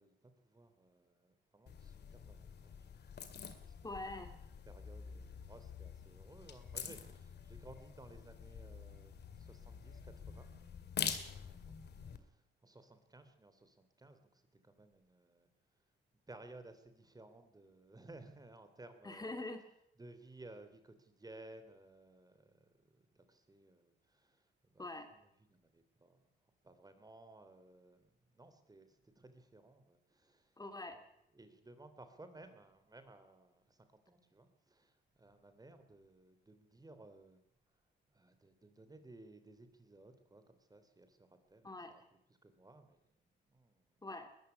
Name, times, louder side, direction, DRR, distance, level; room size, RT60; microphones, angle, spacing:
voice 1, 0.0-3.3 3.6-3.7 4.7-10.5 10.8-11.8 12.1-15.5 16.3-19.4 20.0-24.8 25.5-26.3 26.6-30.6 30.9-31.0 31.3-37.4 38.1-42.0 42.4-43.0 43.5-43.9, right 2 dB, 20° right, 9 dB, 3.2 m, -58 dB
sound 1, 1.7-12.2, left 7 dB, 55° left, 2.4 m, -46 dB
voice 2, 3.8-4.3 19.0-19.7 24.8-25.1 30.6-31.0 41.6-42.0 44.0-44.3, left 2 dB, 20° left, 7 dB, 3.0 m, -44 dB
21.0 x 14.0 x 9.7 m, 0.76 s
cardioid pair, 90°, 20 cm